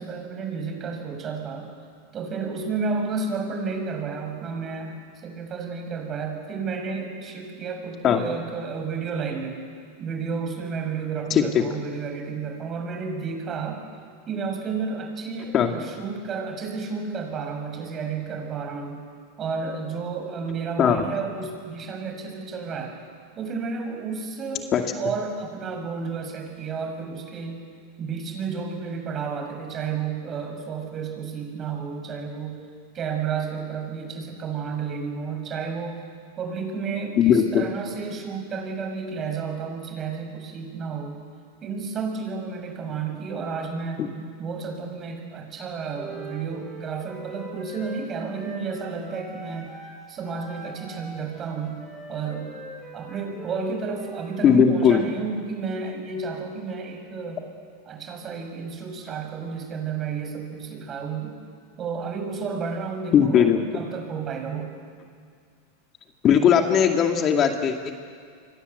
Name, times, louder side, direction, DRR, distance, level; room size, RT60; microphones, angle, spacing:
voice 1, 0.0-1.7 2.1-4.9 5.2-9.6 10.0-13.9 14.3-19.0 19.4-23.0 23.3-27.6 28.0-32.6 32.9-36.0 36.4-41.2 41.6-44.0 44.4-49.7 50.1-52.5 52.9-57.4 57.9-61.4 61.8-64.7, right 5 dB, 35° right, 4 dB, 6.7 m, -31 dB
voice 2, 11.3-11.6 15.5-15.7 20.8-21.0 24.7-24.8 37.2-37.6 44.0-44.1 54.4-55.0 63.1-63.6 66.2-67.9, left 8 dB, 35° left, 4 dB, 2.4 m, -18 dB
Wind instrument woodwind instrument, 45.9-50.0 50.2-54.4, right 2 dB, 10° right, 6.4 m, -42 dB
29.0 x 24.0 x 8.1 m, 2.1 s
hypercardioid pair, 105°, 0 cm